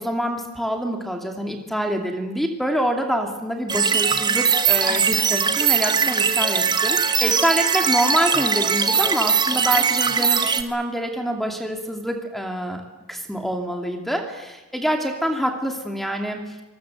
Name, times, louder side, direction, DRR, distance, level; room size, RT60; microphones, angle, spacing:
voice 1, 0.0-12.8 13.1-16.6, equal, ahead, 4 dB, 2.4 m, -26 dB
sound 1, 3.7-10.6, right 6 dB, 20° right, 1.2 m, -20 dB
26.5 x 20.0 x 7.8 m, 1.1 s
head